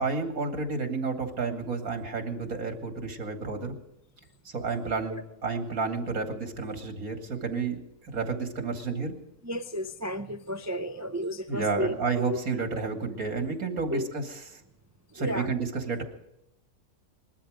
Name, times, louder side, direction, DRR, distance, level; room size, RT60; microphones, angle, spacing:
voice 1, 0.0-3.8 4.5-9.2 11.5-14.2 15.1-16.0, right 4 dB, 75° right, 5 dB, 2.8 m, -31 dB
voice 2, 9.4-12.4 12.7-12.8 13.9-14.1 15.1-15.5, equal, 25° right, 9 dB, 0.3 m, -33 dB
21.0 x 13.0 x 5.1 m, 0.83 s
omnidirectional pair, 1.5 m